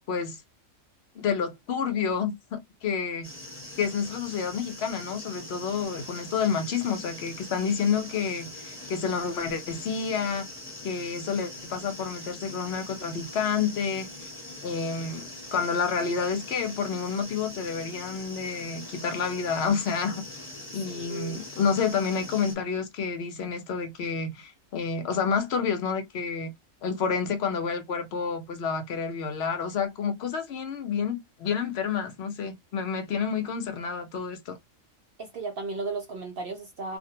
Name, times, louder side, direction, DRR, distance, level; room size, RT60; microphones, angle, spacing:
voice 1, 0.1-0.4 1.2-3.3 3.8-10.5 10.8-14.1 14.6-20.2 20.7-26.5 26.8-34.6, left 6 dB, 60° left, 0.7 m, -29 dB
sound 1, 3.2-22.5, left 1 dB, 10° left, 0.9 m, -42 dB
voice 2, 20.9-21.4 35.2-37.0, right 3 dB, 65° right, 0.5 m, -35 dB
2.4 x 2.1 x 2.7 m
omnidirectional pair, 1.4 m